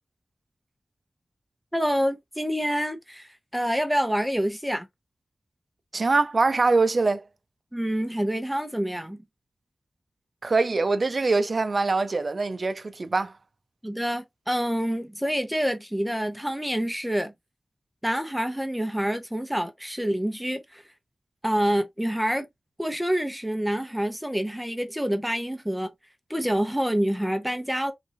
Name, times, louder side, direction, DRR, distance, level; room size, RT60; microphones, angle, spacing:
voice 1, 1.7-4.9 7.7-9.2 13.8-17.3 18.0-20.8 21.4-22.5 22.8-25.9 26.3-27.9, equal, 5° right, 0.9 m, -27 dB
voice 2, 5.9-7.2 10.4-13.3, right 3 dB, 50° right, 0.6 m, -23 dB
3.8 x 2.7 x 2.9 m
wide cardioid pair, 70°, 0 cm